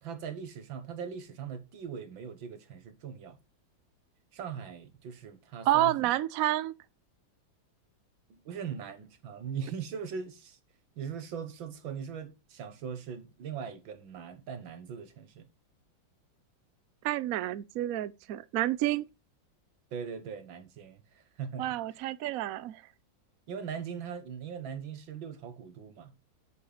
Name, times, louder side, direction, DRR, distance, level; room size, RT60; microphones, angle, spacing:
voice 1, 0.0-3.4 4.3-5.9 8.3-10.6 11.0-15.5 19.9-21.7 23.5-26.1, right 7 dB, 90° right, 2.0 m, -40 dB
voice 2, 5.7-6.7 17.0-19.0 21.6-22.8, right 14 dB, 70° right, 0.8 m, -29 dB
6.6 x 6.6 x 5.6 m
omnidirectional pair, 2.1 m